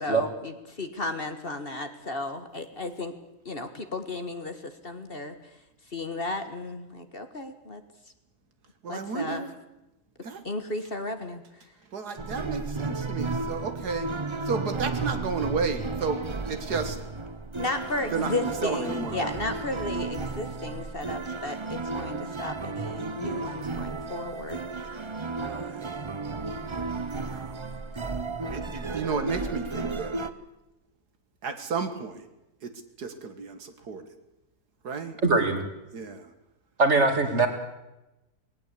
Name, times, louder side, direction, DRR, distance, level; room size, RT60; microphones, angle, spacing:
voice 1, 0.0-3.1 3.4-5.4 5.9-7.8 8.9-9.4 10.4-11.4 17.5-24.6, left 2 dB, 35° left, 8 dB, 1.6 m, -34 dB
voice 2, 8.8-9.5 10.2-10.4 11.9-14.1 14.5-17.0 18.1-19.3 25.3-26.0 27.2-27.5 28.5-30.1 31.4-32.1 32.6-32.7 33.0-34.0 34.8-35.2 35.9-36.3, right 5 dB, 75° right, 8 dB, 2.2 m, -32 dB
sound 1, 12.2-30.3, right 3 dB, 25° right, 0.7 m, -33 dB
voice 3, 35.2-35.6 36.8-37.5, right 3 dB, 45° right, 6 dB, 2.8 m, -21 dB
20.0 x 17.5 x 8.4 m, 0.95 s
omnidirectional pair, 1.7 m